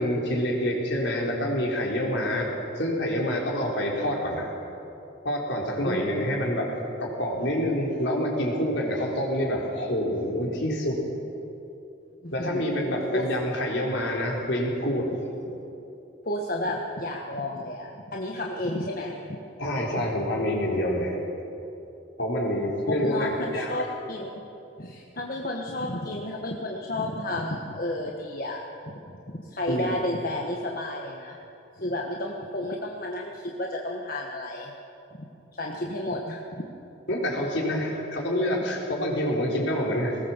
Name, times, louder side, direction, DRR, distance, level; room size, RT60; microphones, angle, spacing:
voice 1, 0.0-4.5 5.2-6.7 7.0-11.0 12.3-15.1 15.4-15.5 19.6-21.2 22.2-23.7 29.7-29.9 37.1-40.2, equal, 70° left, -1 dB, 4.0 m, -27 dB
voice 2, 12.2-12.9 13.1-13.3 16.2-19.4 20.0-20.1 22.9-24.3 24.8-28.6 28.9-31.4 31.8-34.7 35.2-35.3 35.5-36.4, left 1 dB, 50° left, 0 dB, 1.4 m, -32 dB
20.0 x 18.0 x 7.3 m, 2.9 s
head